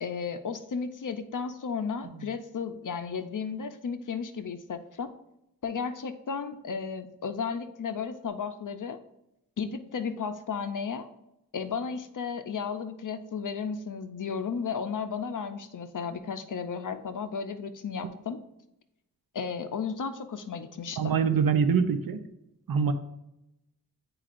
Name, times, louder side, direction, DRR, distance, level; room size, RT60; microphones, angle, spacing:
voice 1, 0.0-5.1 5.6-9.0 9.6-11.1 11.5-18.4 19.3-21.2, left 6 dB, 60° left, 9 dB, 0.6 m, -34 dB
voice 2, 21.0-22.2 22.7-22.9, right 6 dB, 75° right, 8 dB, 0.7 m, -24 dB
8.8 x 4.5 x 2.5 m, 0.86 s
wide cardioid pair, 95°, 36 cm